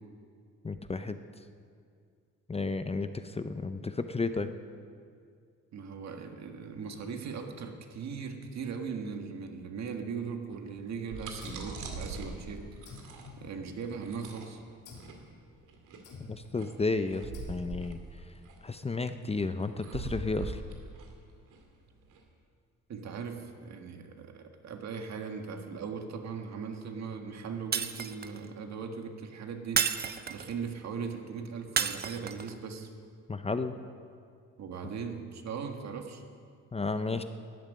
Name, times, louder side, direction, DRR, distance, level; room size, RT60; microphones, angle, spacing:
voice 1, 0.6-1.2 2.5-4.5 16.3-18.0 18.6-20.6 33.3-33.8 36.7-37.2, left 3 dB, 20° left, 10 dB, 0.6 m, -32 dB
voice 2, 5.7-13.0 13.4-14.6 22.9-29.9 30.3-32.9 34.6-36.2, right 5 dB, 60° right, 4 dB, 1.7 m, -39 dB
sound 1, 10.8-22.2, right 3 dB, 85° right, 2.3 m, -43 dB
sound 2, 11.4-12.5 12.8-14.1 14.8-15.3 16.0-16.6 17.3-18.0, left 3 dB, 85° left, 3.1 m, -50 dB
Shatter, 27.7-28.5 29.8-30.6 31.8-32.5, right 6 dB, 30° right, 0.7 m, -31 dB
13.0 x 9.0 x 9.2 m, 2.3 s
cardioid pair, 90°, 30 cm